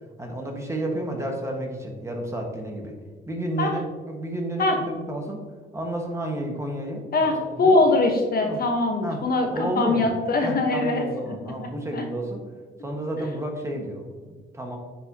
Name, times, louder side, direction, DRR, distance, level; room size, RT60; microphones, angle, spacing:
voice 1, 0.2-3.0 3.3-3.8 4.1-5.4 5.7-7.0 7.4-7.8 8.4-8.6 9.0-9.2 9.5-10.1 10.4-12.4 12.8-14.8, right 1 dB, 15° right, 1 dB, 1.5 m, -31 dB
voice 2, 7.1-12.0, left 2 dB, 50° left, 3 dB, 1.2 m, -23 dB
9.9 x 4.4 x 2.8 m, 1.4 s
cardioid pair, 90°, 20 cm